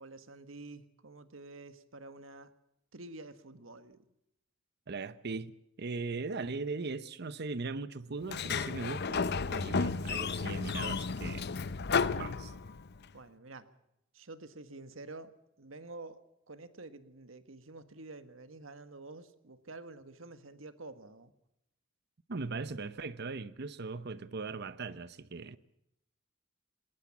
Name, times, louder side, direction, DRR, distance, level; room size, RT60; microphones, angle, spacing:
voice 1, 0.0-2.5 2.9-4.0 13.1-13.7 14.1-16.2 16.5-21.3, right 2 dB, 85° right, 1.6 m, -49 dB
voice 2, 4.9-5.5 5.8-11.5 12.2-12.5 22.3-25.6, right 3 dB, 55° right, 0.8 m, -39 dB
Sliding door, 8.2-13.0, left 5 dB, 55° left, 0.7 m, -33 dB
20.0 x 19.0 x 7.3 m
head